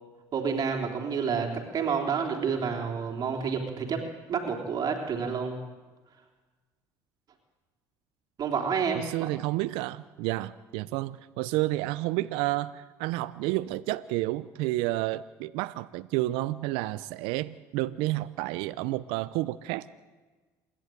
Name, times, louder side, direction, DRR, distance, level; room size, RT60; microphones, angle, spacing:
voice 1, 0.3-4.0 4.3-5.5 8.4-9.3, right 6 dB, 45° right, 1 dB, 3.5 m, -29 dB
voice 2, 8.9-19.9, right 18 dB, 75° right, 15 dB, 0.6 m, -30 dB
27.5 x 11.0 x 9.1 m, 1.3 s
supercardioid pair, 85°, 9 cm